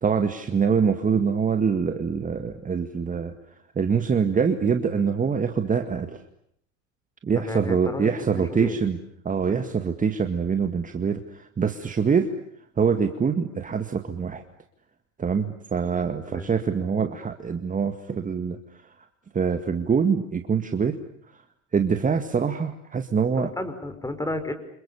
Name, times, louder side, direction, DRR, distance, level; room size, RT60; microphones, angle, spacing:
voice 1, 0.0-3.3 3.8-6.2 7.2-9.0 9.2-12.3 12.8-14.4 15.2-19.1 19.3-21.0 21.3-21.4 21.7-23.5, right 6 dB, 20° right, 8 dB, 2.0 m, -24 dB
voice 2, 7.4-8.8 16.2-16.5 23.3-24.5, left 1 dB, 10° left, 9 dB, 5.5 m, -32 dB
29.5 x 27.5 x 7.1 m, 0.70 s
hypercardioid pair, 80°, 38 cm